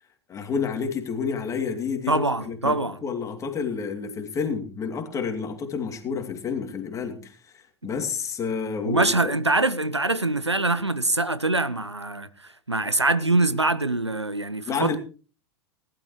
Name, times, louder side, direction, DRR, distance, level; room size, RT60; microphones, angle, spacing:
voice 1, 0.3-9.3 14.7-15.0, left 6 dB, 20° left, 2.7 m, -30 dB
voice 2, 2.1-3.0 8.8-12.3 12.7-15.0, right 2 dB, 85° right, 1.0 m, -24 dB
19.5 x 12.0 x 3.1 m
figure-of-eight pair, 90°, 14 cm